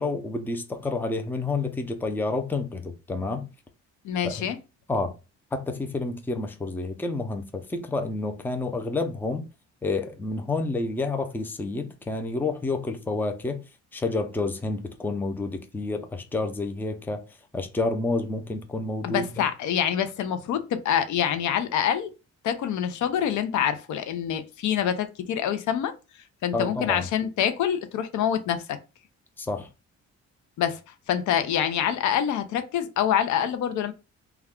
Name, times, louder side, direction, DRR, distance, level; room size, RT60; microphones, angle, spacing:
voice 1, 0.0-3.5 4.2-4.5 4.9-5.1 5.5-9.5 9.8-13.6 13.9-17.2 17.5-19.4 26.5-27.1 29.4-29.7, left 3 dB, 5° left, 0.4 m, -29 dB
voice 2, 4.0-4.6 19.0-22.1 22.4-25.9 26.4-28.8 30.6-30.8 31.1-33.9, left 9 dB, 75° left, 0.6 m, -26 dB
2.3 x 2.2 x 3.5 m
cardioid pair, 90°, 30 cm